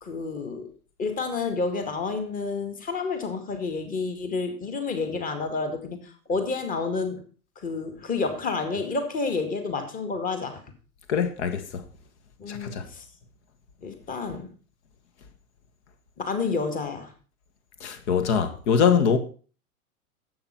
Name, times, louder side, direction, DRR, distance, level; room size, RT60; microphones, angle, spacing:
voice 1, 0.0-0.7 1.0-7.2 7.6-10.6 12.4-13.1 13.8-14.5 16.2-17.1, left 4 dB, 20° left, 2.0 m, -29 dB
voice 2, 11.1-11.8 12.5-12.9 17.8-19.2, left 7 dB, 50° left, 1.9 m, -23 dB
11.5 x 8.0 x 5.5 m
figure-of-eight pair, 100°, 44 cm